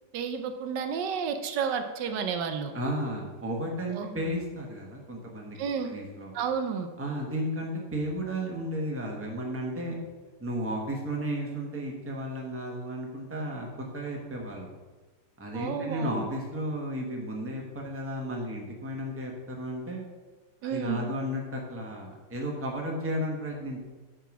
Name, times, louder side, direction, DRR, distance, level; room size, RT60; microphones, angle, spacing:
voice 1, 0.1-2.7 3.9-4.3 5.6-5.9 6.3-6.9 15.5-16.2 20.6-21.1, right 6 dB, 80° right, 7 dB, 1.3 m, -31 dB
voice 2, 2.7-5.6 5.9-6.3 7.0-10.0 10.4-14.7 15.4-20.0 20.6-23.8, equal, 10° right, -1 dB, 1.0 m, -33 dB
9.3 x 3.9 x 6.1 m, 1.3 s
omnidirectional pair, 1.9 m